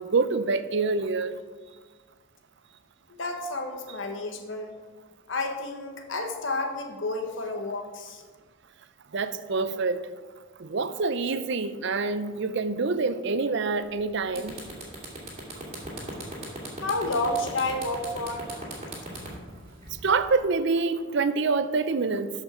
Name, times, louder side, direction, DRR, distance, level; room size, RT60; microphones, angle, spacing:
voice 1, 0.0-1.4 9.1-10.0 10.6-14.6 20.0-22.3, right 4 dB, 60° right, 12 dB, 0.5 m, -26 dB
voice 2, 3.1-4.7 5.3-8.2 16.8-18.5, left 2 dB, 65° left, 4 dB, 1.3 m, -30 dB
sound 1, 13.9-14.0 14.3-20.4, right 2 dB, 30° right, 2.6 m, -38 dB
13.0 x 5.3 x 4.9 m, 1.4 s
head